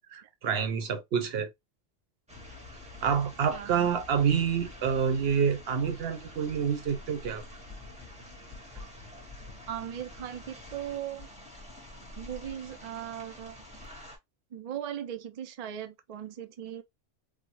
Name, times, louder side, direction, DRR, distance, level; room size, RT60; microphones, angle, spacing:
voice 1, 0.1-1.5 3.0-7.4, right 7 dB, 60° right, 0.8 m, -28 dB
sound 1, 2.3-14.2, left 2 dB, 5° right, 0.7 m, -47 dB
voice 2, 3.5-3.9 9.7-11.3 12.2-13.6 14.5-16.8, right 10 dB, 75° right, 0.3 m, -38 dB
3.5 x 2.0 x 2.9 m
omnidirectional pair, 1.2 m